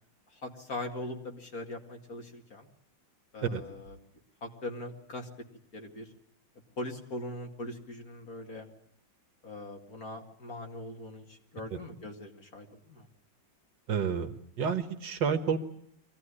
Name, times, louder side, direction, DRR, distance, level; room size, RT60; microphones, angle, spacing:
voice 1, 0.4-2.7 3.3-4.0 4.4-5.3 5.7-6.0 6.8-8.7 9.4-13.1, left 2 dB, 50° left, 2 dB, 2.7 m, -41 dB
voice 2, 13.9-15.6, right 6 dB, 65° right, 7 dB, 2.0 m, -30 dB
24.0 x 16.5 x 9.9 m, 0.73 s
omnidirectional pair, 2.1 m